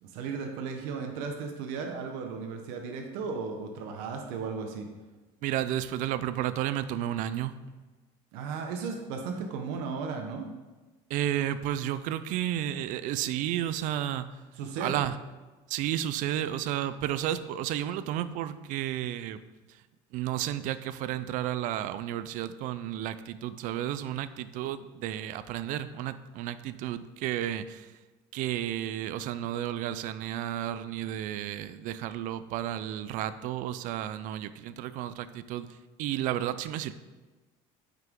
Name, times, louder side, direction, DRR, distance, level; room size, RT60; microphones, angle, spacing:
voice 1, 0.0-4.9 8.3-10.5 14.5-15.0, right 5 dB, 90° right, 3 dB, 1.0 m, -35 dB
voice 2, 5.4-7.6 11.1-14.3 14.8-15.2 15.7-19.4 20.1-27.9 28.3-35.7 36.0-36.9, right 12 dB, 65° right, 14 dB, 0.5 m, -32 dB
8.9 x 5.8 x 3.7 m, 1.2 s
cardioid pair, 130°, 14 cm